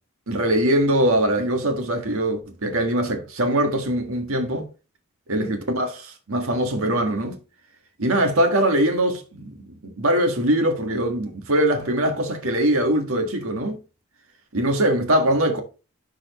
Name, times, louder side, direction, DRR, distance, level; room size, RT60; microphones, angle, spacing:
voice 1, 0.3-4.7 5.3-7.4 8.0-13.8 14.5-15.6, right 1 dB, 70° right, 1.7 m, -22 dB
10.5 x 4.8 x 3.1 m
head